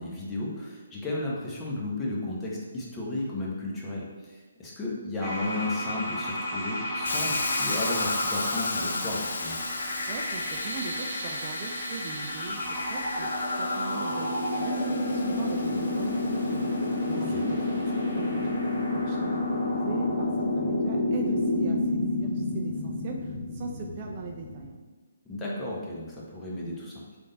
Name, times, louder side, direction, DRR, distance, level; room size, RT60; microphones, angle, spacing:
voice 1, 0.0-9.6 17.1-17.4 25.3-27.2, left 2 dB, 10° left, -5 dB, 1.0 m, -34 dB
sound 1, 5.2-24.7, left 1 dB, 5° right, 1.3 m, -30 dB
Hiss, 7.1-16.9, left 3 dB, 70° left, 0.6 m, -36 dB
voice 2, 10.1-12.6 12.9-19.4 19.7-24.8, right 4 dB, 35° right, 1 dB, 0.4 m, -40 dB
3.7 x 3.4 x 3.9 m, 1.3 s
figure-of-eight pair, 140°, 0 cm